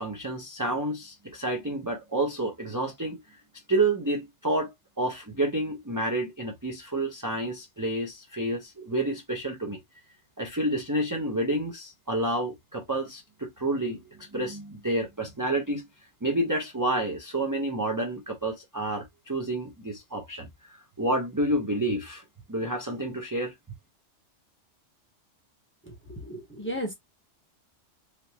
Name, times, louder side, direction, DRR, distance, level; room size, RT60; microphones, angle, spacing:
voice 1, 0.0-3.2 3.7-9.8 10.4-15.9 16.2-20.5 21.0-22.2 22.5-23.5, right 1 dB, 20° right, 0.7 m, -29 dB
voice 2, 25.8-26.9, equal, 10° left, 1.0 m, -35 dB
3.4 x 2.7 x 2.8 m
omnidirectional pair, 1.3 m